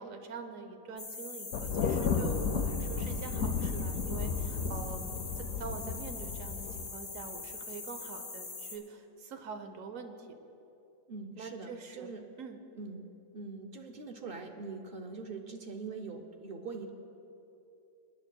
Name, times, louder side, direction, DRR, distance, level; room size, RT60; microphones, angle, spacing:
voice 1, 0.0-10.3 11.4-12.1 12.4-12.6, right 5 dB, 70° right, 6 dB, 1.2 m, -45 dB
sound 1, 1.0-8.8, left 4 dB, 60° left, 1.7 m, -43 dB
Thunder, 1.5-6.9, left 5 dB, 85° left, 1.1 m, -33 dB
voice 2, 11.1-12.2 12.8-13.1 13.3-16.9, right 4 dB, 50° right, 5 dB, 0.8 m, -43 dB
27.0 x 9.7 x 2.2 m, 2.9 s
omnidirectional pair, 1.4 m